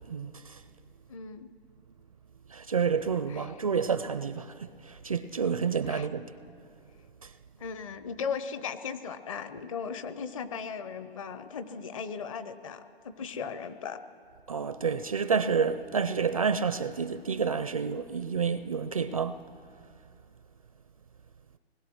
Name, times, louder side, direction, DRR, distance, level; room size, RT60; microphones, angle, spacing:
voice 1, 0.1-0.6 2.5-6.3 7.2-7.3 14.5-19.4, right 6 dB, 35° right, 0.4 m, -29 dB
voice 2, 1.1-1.5 3.3-3.6 5.9-6.1 7.6-14.0, left 6 dB, 30° left, 0.8 m, -37 dB
25.5 x 20.5 x 6.3 m
hypercardioid pair, 155°, 32 cm